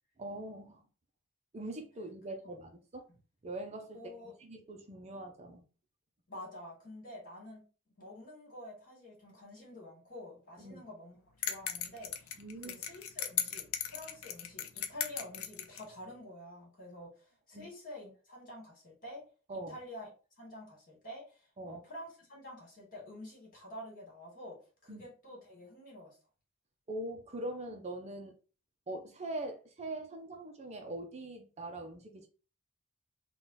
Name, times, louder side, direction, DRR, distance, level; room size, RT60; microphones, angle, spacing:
voice 1, 0.2-0.8 1.5-3.0 3.4-5.6 10.6-10.9 12.4-12.8 17.5-17.7 19.5-19.8 21.6-21.8 24.9-25.1 26.9-28.3 28.9-32.3, right 1 dB, 30° right, 0.5 m, -42 dB
voice 2, 3.9-4.3 6.3-7.6 8.0-11.2 11.5-19.3 19.7-20.1 20.4-26.2, left 1 dB, 40° left, 2.1 m, -48 dB
sound 1, 11.4-15.8, left 9 dB, 65° left, 0.5 m, -37 dB
3.8 x 2.3 x 4.0 m
head